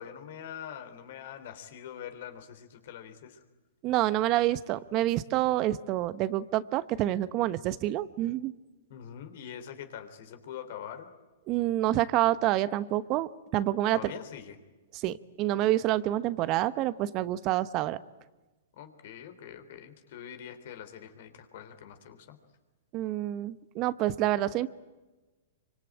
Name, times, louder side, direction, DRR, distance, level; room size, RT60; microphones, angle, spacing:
voice 1, 0.0-3.4 8.9-11.1 13.9-14.6 18.8-22.4, left 9 dB, 60° left, 9 dB, 3.7 m, -44 dB
voice 2, 3.8-8.5 11.5-14.1 14.9-18.0 22.9-24.7, right 14 dB, 40° right, 15 dB, 1.0 m, -28 dB
26.0 x 24.5 x 8.9 m, 1.2 s
hypercardioid pair, 115°, 0 cm